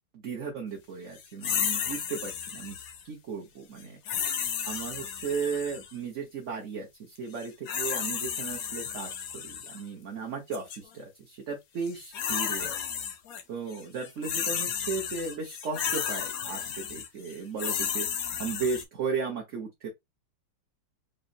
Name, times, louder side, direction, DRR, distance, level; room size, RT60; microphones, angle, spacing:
voice 1, 0.1-2.8 3.0-4.0 4.6-12.0 12.3-12.7 13.5-19.9, right 5 dB, 45° right, 1.1 m, -35 dB
sound 1, 1.4-3.0 4.1-5.9 7.4-9.8 10.5-10.8 11.8-13.4 13.7-18.8, left 8 dB, 65° left, 1.0 m, -33 dB
5.1 x 2.5 x 2.7 m
omnidirectional pair, 2.1 m